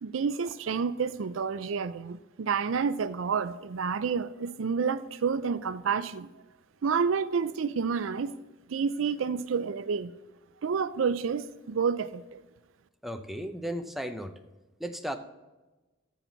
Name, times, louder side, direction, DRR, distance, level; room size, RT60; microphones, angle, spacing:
voice 1, 0.0-6.3 6.8-8.3 8.7-10.1 10.6-12.4, right 6 dB, 70° right, 14 dB, 0.4 m, -29 dB
voice 2, 13.0-14.3 14.8-15.2, equal, ahead, 6 dB, 0.6 m, -35 dB
14.5 x 5.9 x 4.0 m, 1.1 s
head